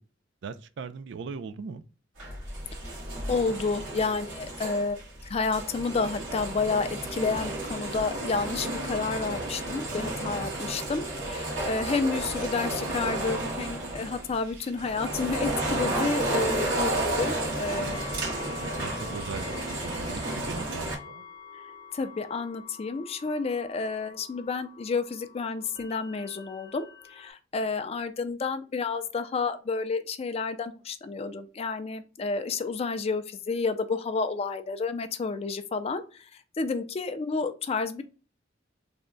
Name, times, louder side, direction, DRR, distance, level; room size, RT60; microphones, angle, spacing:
voice 1, 0.4-1.8 17.7-18.0 18.4-21.3, right 5 dB, 65° right, 0.4 m, -40 dB
sound 1, 2.2-21.0, right 1 dB, 85° right, 1.4 m, -32 dB
voice 2, 3.3-18.0 18.4-18.5 20.2-20.3 21.5-21.6 21.9-36.3 36.6-38.0, left 4 dB, 30° left, 0.3 m, -30 dB
sound 2, 15.4-27.3, left 6 dB, 15° right, 0.6 m, -46 dB
3.4 x 2.1 x 3.7 m
head